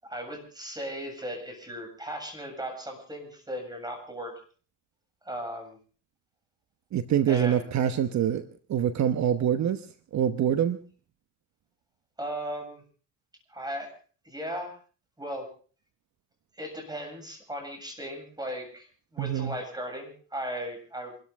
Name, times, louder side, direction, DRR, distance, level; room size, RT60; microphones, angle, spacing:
voice 1, 0.0-4.4 5.2-5.8 7.3-7.7 12.2-12.8 13.5-13.9 14.2-14.7 15.2-15.5 16.6-21.1, equal, 15° right, 4 dB, 7.4 m, -37 dB
voice 2, 6.9-9.9 10.1-10.8 19.2-19.5, right 9 dB, 65° right, 9 dB, 1.1 m, -25 dB
27.5 x 13.0 x 3.6 m, 0.40 s
cardioid pair, 90°, 30 cm